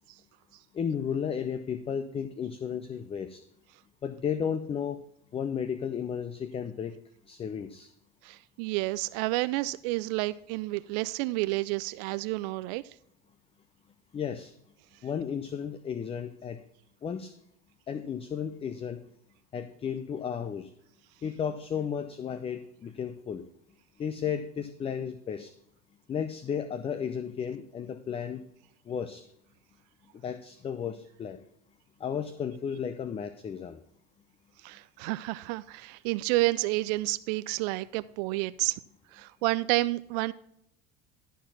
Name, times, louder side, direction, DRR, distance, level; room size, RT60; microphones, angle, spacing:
voice 1, 0.7-3.4 4.0-5.0 5.3-6.9 7.3-7.9 14.1-14.5 15.0-16.6 17.0-17.3 17.9-19.0 19.5-20.7 21.2-23.4 24.0-25.5 26.1-28.4 28.9-29.3 30.2-31.4 32.0-33.8, left 7 dB, 25° left, 11 dB, 0.6 m, -33 dB
voice 2, 8.2-12.8 34.6-38.8 39.1-40.3, right 20 dB, 75° right, 16 dB, 0.4 m, -30 dB
12.5 x 4.6 x 5.7 m, 0.74 s
supercardioid pair, 110°, 21 cm